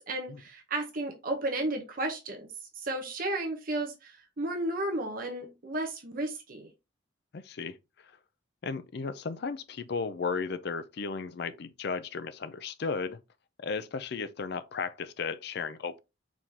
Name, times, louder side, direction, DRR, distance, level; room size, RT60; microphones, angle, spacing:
voice 1, 0.0-2.5 2.7-6.7, right 2 dB, 45° right, 0.9 m, -33 dB
voice 2, 7.3-8.1 8.6-13.2 13.6-16.0, left 5 dB, 55° left, 0.4 m, -35 dB
4.9 x 3.7 x 2.8 m
head